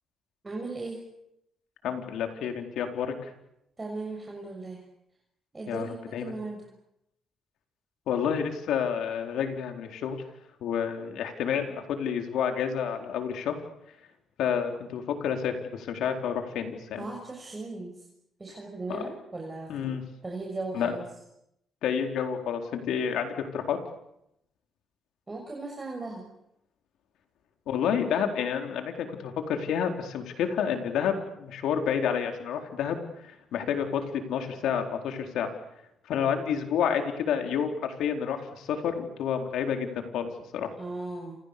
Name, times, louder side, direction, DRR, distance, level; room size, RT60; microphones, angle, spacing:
voice 1, 0.4-1.0 3.8-4.9 5.5-6.7 17.0-18.0 18.4-19.7 20.2-21.1 25.3-26.3 40.8-41.4, right 3 dB, 20° right, 1 dB, 6.4 m, -37 dB
voice 2, 1.8-3.3 5.7-5.9 6.1-6.3 8.1-10.2 10.6-13.6 14.4-17.0 18.9-19.0 19.7-20.0 20.7-21.0 21.8-23.8 27.7-35.5 36.1-40.7, left 7 dB, 80° left, 5 dB, 4.3 m, -29 dB
29.0 x 28.0 x 7.0 m, 0.81 s
cardioid pair, 95°, 0 cm